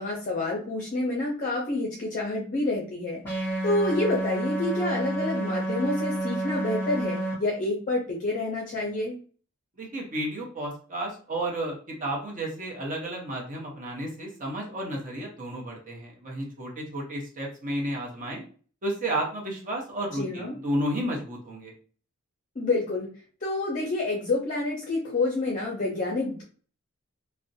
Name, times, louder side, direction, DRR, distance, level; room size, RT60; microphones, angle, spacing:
voice 1, 0.0-9.2 20.1-20.5 22.6-23.1 23.4-26.4, left 2 dB, 40° left, -2 dB, 0.5 m, -28 dB
sound 1, 3.2-7.3, right 2 dB, 10° left, 1.1 m, -29 dB
voice 2, 9.8-18.4 18.8-21.7, right 1 dB, 40° right, -1 dB, 0.8 m, -32 dB
2.5 x 2.1 x 2.6 m, 0.42 s
head